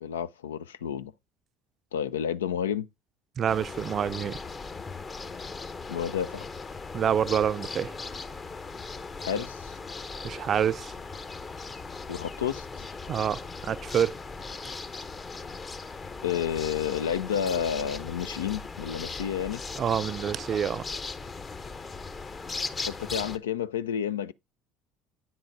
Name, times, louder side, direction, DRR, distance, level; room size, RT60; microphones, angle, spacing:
voice 1, 0.0-1.1 1.9-2.9 5.9-6.5 9.2-9.7 12.1-12.9 16.2-19.6 22.9-24.3, left 8 dB, 90° left, 0.4 m, -30 dB
voice 2, 3.4-4.4 6.9-7.9 10.2-10.9 13.1-14.1 19.8-20.9, right 8 dB, 45° right, 0.4 m, -27 dB
sound 1, 3.5-23.4, left 4 dB, 30° left, 0.8 m, -38 dB
9.2 x 3.9 x 5.1 m
hypercardioid pair, 70°, 0 cm